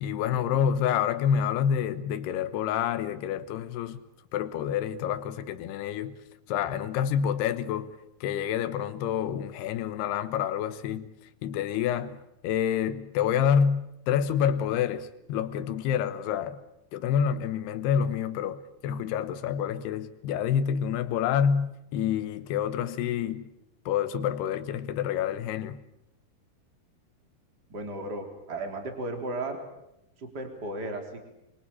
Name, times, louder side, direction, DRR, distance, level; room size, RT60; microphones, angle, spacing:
voice 1, 0.0-4.0 4.3-6.1 6.5-7.9 8.2-11.1 11.4-12.2 12.4-16.6 16.9-23.5 23.9-25.8, left 8 dB, 85° left, 3.2 m, -28 dB
voice 2, 27.7-29.6 30.2-31.3, right 2 dB, 25° right, 4.0 m, -35 dB
27.0 x 24.0 x 8.6 m
omnidirectional pair, 4.5 m